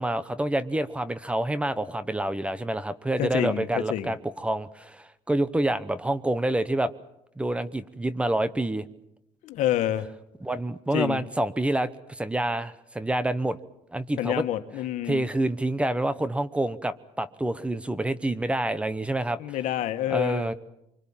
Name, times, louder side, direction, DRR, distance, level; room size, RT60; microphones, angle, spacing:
voice 1, 0.0-6.9 7.4-8.8 10.4-13.6 13.9-14.4 15.1-19.4 20.1-20.5, right 1 dB, 10° right, 14 dB, 1.0 m, -27 dB
voice 2, 3.2-4.1 9.4-10.1 10.9-11.2 14.2-15.3 19.4-20.5, left 12 dB, 75° left, 8 dB, 1.7 m, -28 dB
25.0 x 25.0 x 7.4 m, 0.83 s
cardioid pair, 125°, 12 cm